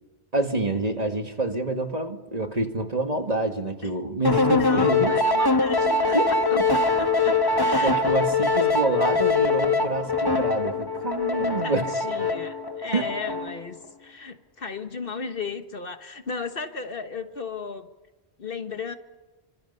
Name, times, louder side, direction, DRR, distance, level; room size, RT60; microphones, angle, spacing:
voice 1, 0.3-5.1 6.1-6.6 7.8-11.9 12.9-13.0, right 2 dB, 35° right, 5 dB, 2.0 m, -27 dB
sound 1, 4.2-13.6, left 3 dB, 20° left, 1.2 m, -23 dB
voice 2, 4.5-7.9 11.4-17.9 18.4-19.0, left 4 dB, 55° left, 8 dB, 1.5 m, -35 dB
29.0 x 25.0 x 5.5 m, 1.2 s
omnidirectional pair, 1.1 m